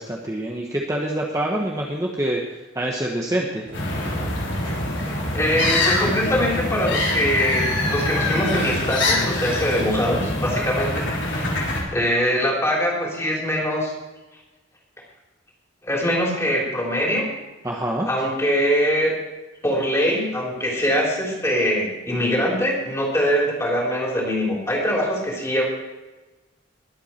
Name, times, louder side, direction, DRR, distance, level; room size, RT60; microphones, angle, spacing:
voice 1, 0.0-2.4 2.7-3.7 17.6-18.1, right 1 dB, 15° right, -2 dB, 1.2 m, -25 dB
sound 1, 3.6-8.7, right 1 dB, 60° right, 3.6 m, -36 dB
sound 2, 3.7-11.8, left 2 dB, 65° left, 3.5 m, -24 dB
voice 2, 5.3-11.6 11.9-13.9 15.8-17.3 18.1-19.1 19.6-25.6, equal, 15° left, -2 dB, 3.4 m, -23 dB
21.5 x 8.2 x 4.4 m, 1.1 s
head